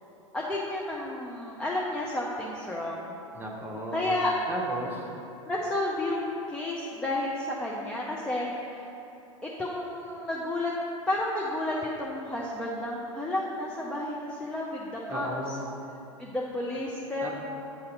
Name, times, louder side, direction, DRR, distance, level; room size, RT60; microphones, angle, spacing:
voice 1, 0.3-3.2 3.9-4.3 5.5-8.9 9.4-10.7 11.1-15.3 16.2-17.3, left 1 dB, 5° left, -4 dB, 0.6 m, -31 dB
voice 2, 3.3-4.1 4.5-5.1 15.1-15.6 17.2-17.3, equal, 10° right, -2 dB, 1.0 m, -35 dB
7.8 x 2.7 x 5.2 m, 2.8 s
figure-of-eight pair, 95°, 17 cm